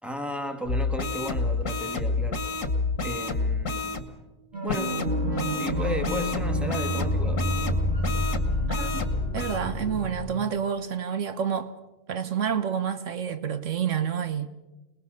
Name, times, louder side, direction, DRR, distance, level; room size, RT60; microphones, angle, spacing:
voice 1, 0.0-2.5 3.0-4.1 4.6-5.0 5.5-7.5, left 1 dB, ahead, 2.4 m, -34 dB
sound 1, 0.7-4.0 4.7-9.6, left 3 dB, 90° left, 2.2 m, -29 dB
sound 2, 4.5-10.2, right 1 dB, 55° right, 4.1 m, -29 dB
voice 2, 8.7-9.0 9.3-11.7 12.1-14.5, right 7 dB, 75° right, 1.3 m, -28 dB
27.0 x 20.5 x 6.7 m
omnidirectional pair, 1.3 m